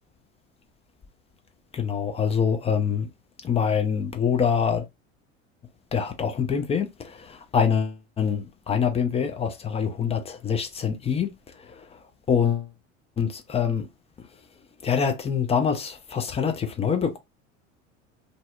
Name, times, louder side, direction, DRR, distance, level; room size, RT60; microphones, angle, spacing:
voice 1, 1.7-3.1 3.4-4.8 5.9-11.3 11.8-11.9 12.3-12.7 13.2-13.9 14.8-17.2, left 7 dB, 15° left, 0.5 m, -25 dB
2.6 x 2.0 x 2.4 m
figure-of-eight pair, 70°, 38 cm